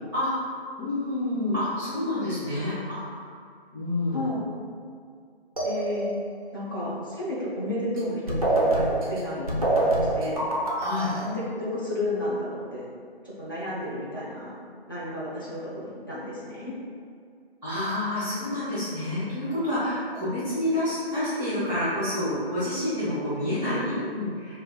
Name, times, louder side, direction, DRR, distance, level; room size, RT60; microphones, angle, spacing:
voice 1, 0.1-3.3 3.7-4.2 10.7-11.1 17.6-24.6, left 1 dB, ahead, -17 dB, 1.0 m, -28 dB
voice 2, 4.1-4.5 5.6-6.1 6.5-10.5 11.1-12.9 13.2-14.6 14.9-16.7 23.7-23.8, left 1 dB, 20° left, -9 dB, 0.5 m, -32 dB
sound 1, 5.6-6.4 8.0-8.1 8.3-11.3, right 2 dB, 35° right, 0.5 m, -25 dB
5.3 x 2.3 x 2.3 m, 2.2 s
figure-of-eight pair, 155°, 31 cm